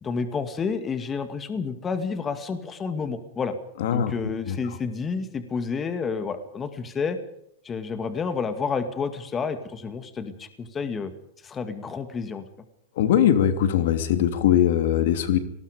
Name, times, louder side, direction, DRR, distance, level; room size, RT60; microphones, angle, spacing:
voice 1, 0.0-3.5 3.9-7.2 7.6-11.1 11.4-12.4, left 5 dB, 20° left, 9 dB, 2.2 m, -30 dB
voice 2, 3.8-4.1 4.5-4.6 13.0-15.4, left 10 dB, 75° left, 9 dB, 2.9 m, -21 dB
26.0 x 19.5 x 5.2 m, 0.74 s
supercardioid pair, 135°, 0 cm